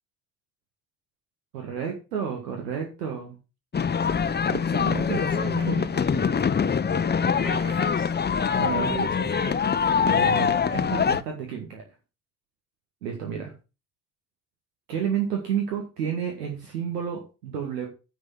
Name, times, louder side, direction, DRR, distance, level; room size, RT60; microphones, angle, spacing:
voice 1, 1.5-3.4 4.5-5.9 8.6-9.1 10.0-11.8 13.0-13.5 14.9-17.9, right 8 dB, 85° right, 1.9 m, -31 dB
sound 1, 3.7-11.2, left 6 dB, 20° left, 0.7 m, -24 dB
voice 2, 5.1-6.8 7.2-8.1 8.5-9.6, right 7 dB, 60° right, 1.9 m, -40 dB
9.5 x 4.6 x 7.6 m
hypercardioid pair, 50°, 46 cm